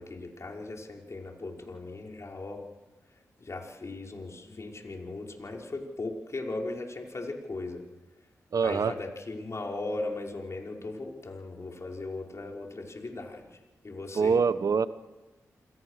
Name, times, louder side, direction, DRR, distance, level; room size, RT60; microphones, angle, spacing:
voice 1, 0.0-2.6 3.4-7.8 8.6-13.5 13.8-14.4, left 2 dB, 50° left, 1 dB, 5.6 m, -38 dB
voice 2, 8.5-8.9 14.1-14.9, right 5 dB, 65° right, 14 dB, 1.2 m, -24 dB
28.5 x 21.5 x 6.7 m, 1.1 s
supercardioid pair, 40°, 7 cm